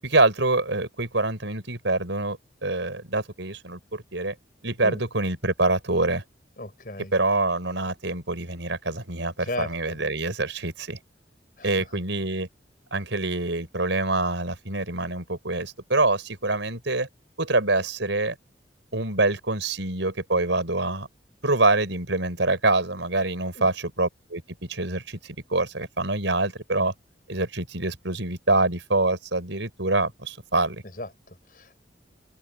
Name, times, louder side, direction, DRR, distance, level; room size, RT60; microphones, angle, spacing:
voice 1, 0.0-4.4 4.6-6.2 7.1-11.0 11.6-12.5 12.9-17.1 17.4-18.4 18.9-21.1 21.4-26.9 27.3-30.8, right 2 dB, 85° right, 5.8 m, -25 dB
voice 2, 6.6-7.1 9.4-10.0 11.6-11.9 23.5-23.7 30.9-31.8, left 1 dB, 50° left, 5.8 m, -36 dB
open air
head